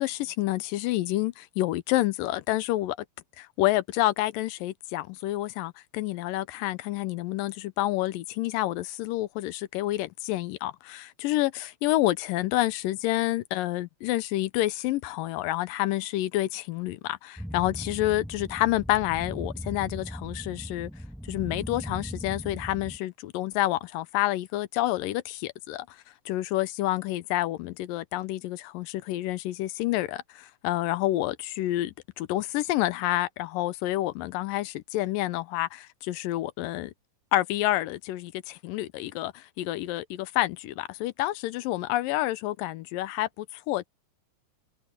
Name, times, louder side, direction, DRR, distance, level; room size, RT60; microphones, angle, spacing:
voice 1, 0.0-3.0 3.4-20.9 21.3-26.0 26.3-36.9 37.3-43.9, left 16 dB, 85° left, 2.5 m, -28 dB
sound 1, 17.4-23.0, equal, ahead, 1.0 m, -38 dB
omnidirectional pair, 3.8 m